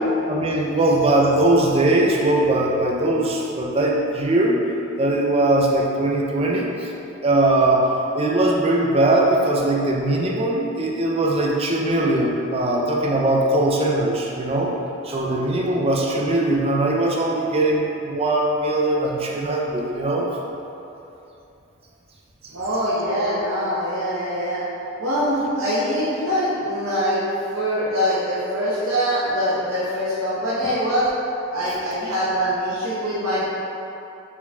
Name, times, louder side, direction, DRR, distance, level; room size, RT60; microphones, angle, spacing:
voice 1, 0.0-4.6 5.0-6.9 7.2-14.7 15.0-20.4, right 1 dB, 30° right, -2 dB, 0.4 m, -20 dB
voice 2, 22.5-24.6 25.0-27.3 27.5-31.1 31.5-33.5, equal, 80° right, -11 dB, 0.8 m, -23 dB
4.6 x 4.1 x 2.3 m, 2.8 s
head